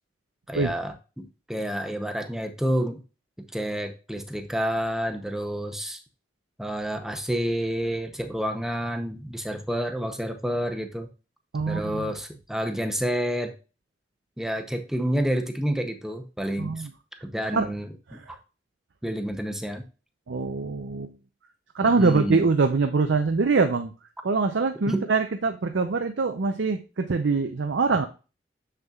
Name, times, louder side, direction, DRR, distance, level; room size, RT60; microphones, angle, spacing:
voice 1, 0.5-3.0 3.4-6.0 6.6-11.1 11.7-13.5 14.4-16.9 17.2-18.4 19.0-19.8 21.8-22.5 24.9-25.1, equal, 5° right, 5 dB, 0.7 m, -29 dB
voice 2, 11.5-12.1 16.6-16.9 17.5-17.7 18.1-18.2 20.3-21.1 21.7-23.9 24.2-28.1, right 4 dB, 85° right, 7 dB, 0.6 m, -24 dB
7.2 x 6.6 x 2.4 m, 0.33 s
head